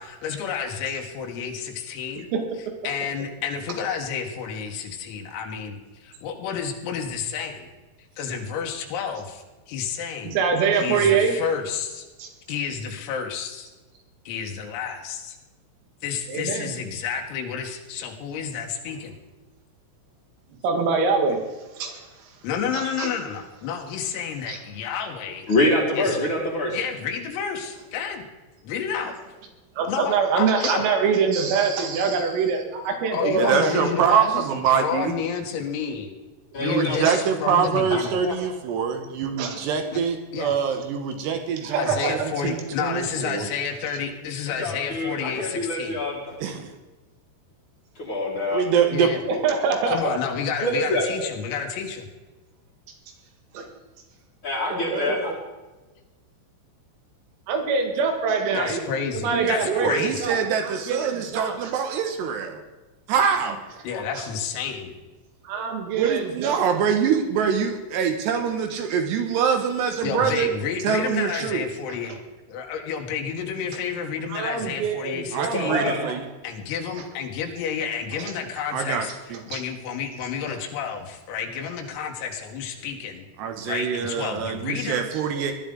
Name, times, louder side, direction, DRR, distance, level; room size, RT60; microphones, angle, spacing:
voice 1, 0.0-2.3 2.8-7.7 8.2-10.4 10.8-12.1 12.5-13.7 14.3-15.4 16.0-19.2 22.4-25.5 26.0-26.2 26.7-28.3 28.6-29.1 29.9-30.8 33.1-36.2 36.6-38.3 39.9-40.0 40.3-40.6 41.8-46.0 48.9-49.2 49.9-52.1 58.6-60.3 63.8-64.9 70.0-72.2 72.5-75.8 76.4-83.3 83.7-85.1, left 7 dB, 90° left, 2 dB, 4.3 m, -30 dB
voice 2, 10.2-11.4 12.2-12.3 16.3-16.7 20.6-21.4 21.8-22.3 22.7-23.1 24.5-24.6 29.8-33.9 37.1-37.2 39.4-39.6 41.6-41.8 49.3-50.2 51.2-51.3 53.5-53.7 54.7-55.2 57.5-58.8 59.2-60.4 60.6-61.8 64.2-64.3 65.4-66.6 74.3-76.2 78.1-78.3 79.5-79.6 80.5-80.6, right 5 dB, 90° right, 3 dB, 4.7 m, -25 dB
voice 3, 25.5-26.8 36.5-37.2 37.9-38.3 44.6-46.4 48.0-48.6 50.6-51.0 54.4-55.3 75.5-76.1, left 1 dB, 45° left, -6 dB, 1.6 m, -25 dB
voice 4, 33.4-35.1 36.6-43.5 46.4-46.7 48.5-49.1 59.3-62.6 63.1-63.6 66.0-70.5 70.8-71.7 75.3-76.3 78.7-79.4 83.4-85.5, right 7 dB, 70° right, 5 dB, 2.9 m, -24 dB
19.5 x 12.5 x 3.9 m, 1.2 s
omnidirectional pair, 5.9 m